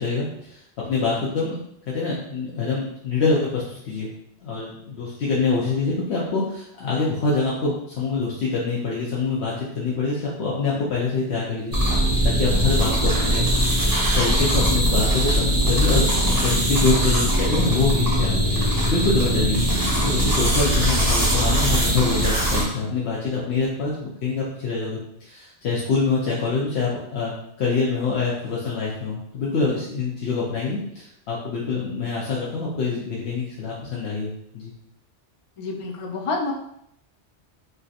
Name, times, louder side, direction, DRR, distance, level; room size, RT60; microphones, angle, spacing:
voice 1, 0.0-1.6 1.9-4.1 4.4-13.7 14.1-19.6 20.0-27.3 27.6-34.7, left 4 dB, 75° left, -6 dB, 0.9 m, -25 dB
sound 1, 11.7-22.6, equal, 20° right, 0.7 m, -21 dB
voice 2, 35.6-36.5, left 3 dB, 50° left, 1 dB, 0.3 m, -29 dB
3.3 x 2.7 x 2.4 m, 0.74 s
omnidirectional pair, 1.1 m